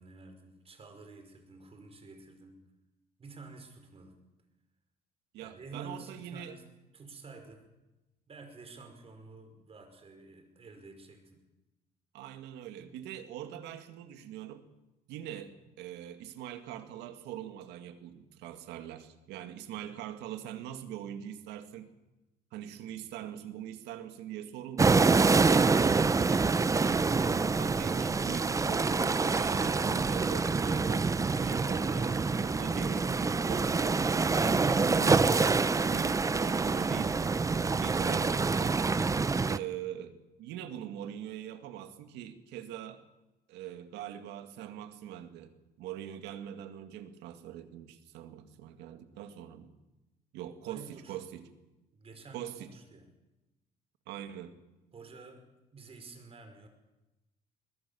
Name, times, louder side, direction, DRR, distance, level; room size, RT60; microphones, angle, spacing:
voice 1, 0.0-2.6 3.2-4.2 5.4-6.7 6.9-7.6 8.3-11.4 50.6-51.2 51.9-53.1 54.9-55.4 55.7-56.7, right 3 dB, 35° right, 6 dB, 5.2 m, -50 dB
voice 2, 5.3-6.5 12.1-14.7 15.1-21.9 22.5-25.2 25.5-34.0 34.4-37.2 37.8-38.8 39.5-43.0 43.5-45.5 45.8-49.7 50.3-51.5 52.3-52.7 54.1-54.5, right 11 dB, 90° right, 9 dB, 2.1 m, -43 dB
sound 1, 24.8-39.6, right 4 dB, 20° right, 0.7 m, -26 dB
22.0 x 21.0 x 7.1 m, 1.0 s
cardioid pair, 110°, 17 cm